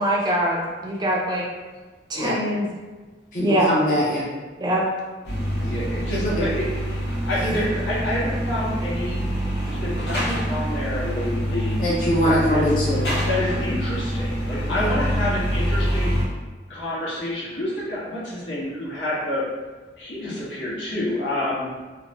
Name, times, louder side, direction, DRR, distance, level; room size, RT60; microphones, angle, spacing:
voice 1, 0.0-1.4 2.1-2.7 3.4-3.7 4.6-4.8, equal, 25° right, -3 dB, 0.4 m, -23 dB
voice 2, 3.3-4.3 6.1-6.5 7.4-7.5 11.8-13.0 14.7-14.9, equal, 45° left, -6 dB, 0.4 m, -23 dB
sound 1, 5.2-16.3, equal, 65° left, 0.8 m, -25 dB
voice 3, 5.6-6.7 7.1-9.2 9.7-11.8 12.2-12.6 13.3-16.2 16.7-19.4 20.0-21.7, left 1 dB, 85° left, -8 dB, 1.1 m, -28 dB
2.7 x 2.1 x 2.8 m, 1.3 s
head